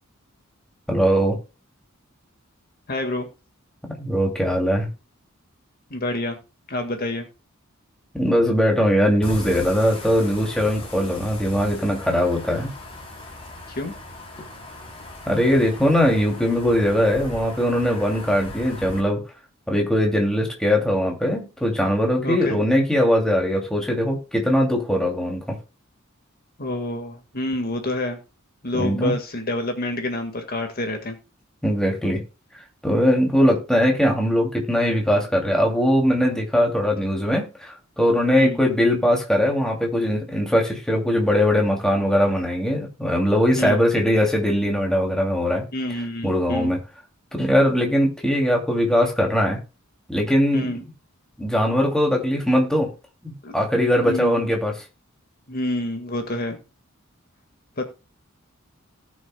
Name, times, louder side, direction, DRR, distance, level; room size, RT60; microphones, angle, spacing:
voice 1, 0.9-1.4 4.0-4.9 8.1-12.7 15.3-19.2 19.7-25.6 28.7-29.1 31.6-32.2 32.8-45.7 46.2-46.8 47.3-49.6 50.1-50.7 51.4-52.9 53.2-54.7, equal, 5° left, 0 dB, 2.6 m, -20 dB
voice 2, 2.9-3.3 5.9-6.4 6.7-7.3 13.7-13.9 22.2-22.6 26.6-28.2 28.6-31.2 38.4-38.6 43.6-43.8 45.7-46.7 50.5-50.8 53.4-53.5 54.1-54.4 55.5-56.6 57.8-57.9, left 1 dB, 45° left, 5 dB, 1.8 m, -27 dB
sound 1, 9.2-19.0, left 1 dB, 25° left, 3.2 m, -38 dB
18.5 x 6.3 x 2.2 m, 0.30 s
head